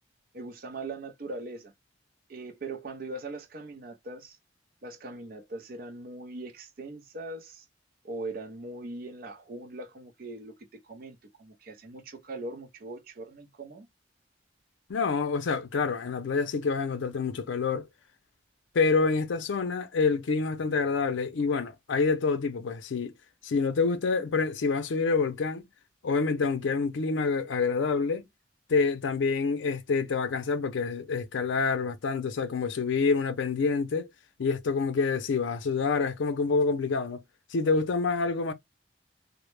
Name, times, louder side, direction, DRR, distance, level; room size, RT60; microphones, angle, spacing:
voice 1, 0.3-1.7 2.3-4.4 4.8-7.7 8.0-13.9, right 2 dB, 50° right, 0.5 m, -40 dB
voice 2, 14.9-17.9 18.7-23.1 23.4-25.6 26.0-28.3 28.7-34.1 34.4-37.2 37.5-38.5, left 4 dB, 85° left, 0.4 m, -27 dB
2.1 x 2.0 x 3.0 m
head